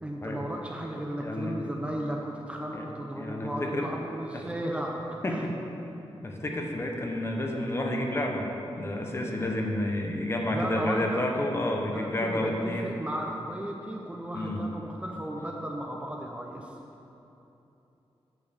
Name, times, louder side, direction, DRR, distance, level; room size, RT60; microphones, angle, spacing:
voice 1, 0.0-5.0 5.3-5.4 10.5-11.3 11.9-16.8, right 1 dB, 10° right, -1 dB, 0.5 m, -35 dB
voice 2, 1.2-1.6 2.7-2.9 3.2-3.9 4.3-4.4 5.2-5.5 6.2-8.5 8.8-12.8 14.3-14.6, left 1 dB, 25° left, 1 dB, 0.8 m, -30 dB
8.7 x 4.4 x 6.4 m, 3.0 s
wide cardioid pair, 175°, 10 cm